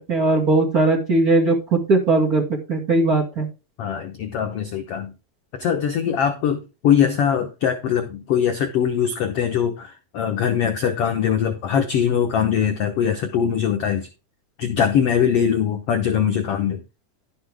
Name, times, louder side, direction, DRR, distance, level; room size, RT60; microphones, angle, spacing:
voice 1, 0.1-2.4 2.7-3.5, right 2 dB, 30° right, -1 dB, 1.9 m, -19 dB
voice 2, 3.8-5.1 5.5-14.1 14.6-16.8, left 8 dB, 80° left, 6 dB, 1.3 m, -22 dB
11.5 x 7.8 x 3.5 m, 0.29 s
omnidirectional pair, 4.1 m